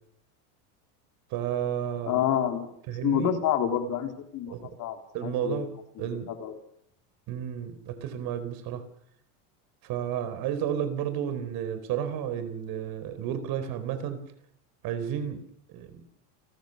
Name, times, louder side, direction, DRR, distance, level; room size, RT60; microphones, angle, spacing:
voice 1, 1.3-2.2 2.9-3.4 4.5-4.7 5.1-5.7 6.0-6.3 7.3-8.8 9.8-14.2 14.8-15.4 15.7-16.0, right 9 dB, 50° right, 11 dB, 4.4 m, -32 dB
voice 2, 2.1-2.7 3.0-5.0 5.2-5.7 6.0-6.5, left 10 dB, 40° left, 5 dB, 3.8 m, -28 dB
29.5 x 14.5 x 6.6 m, 0.68 s
supercardioid pair, 140°, 46 cm